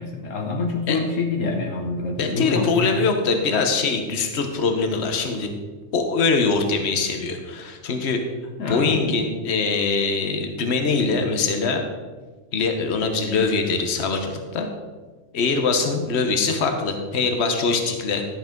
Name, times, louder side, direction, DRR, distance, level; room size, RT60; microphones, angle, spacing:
voice 1, 0.0-2.9 8.6-9.3, left 3 dB, 75° left, 3 dB, 1.3 m, -26 dB
voice 2, 2.2-5.5 5.9-8.2 8.7-11.8 12.5-14.7 15.3-18.2, left 4 dB, 55° left, 5 dB, 1.3 m, -23 dB
12.0 x 8.1 x 3.8 m, 1.4 s
omnidirectional pair, 1.4 m